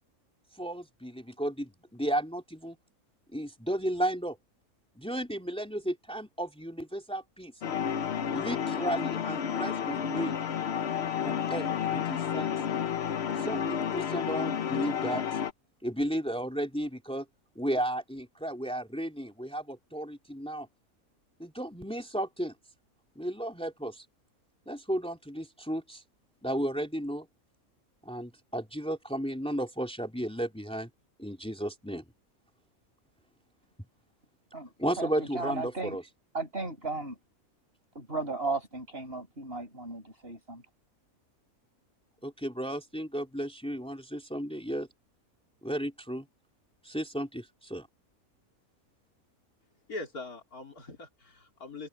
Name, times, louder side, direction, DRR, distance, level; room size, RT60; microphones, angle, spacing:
voice 1, 0.5-2.8 3.3-4.4 5.0-7.5 8.3-10.4 11.2-12.5 13.4-15.4 15.8-17.3 17.6-20.7 21.4-22.5 23.2-24.0 24.7-26.0 26.4-27.3 28.1-30.9 31.2-32.0 34.8-36.0 42.2-44.9 45.6-46.3 46.8-47.9, right 1 dB, 5° left, 3.6 m, -34 dB
sound 1, 7.6-15.5, left 8 dB, 55° left, 1.0 m, -31 dB
voice 2, 34.5-36.0 36.3-37.2 37.9-40.6, right 3 dB, 40° right, 6.6 m, -35 dB
voice 3, 49.9-51.9, left 2 dB, 90° left, 4.1 m, -42 dB
omnidirectional pair, 1.5 m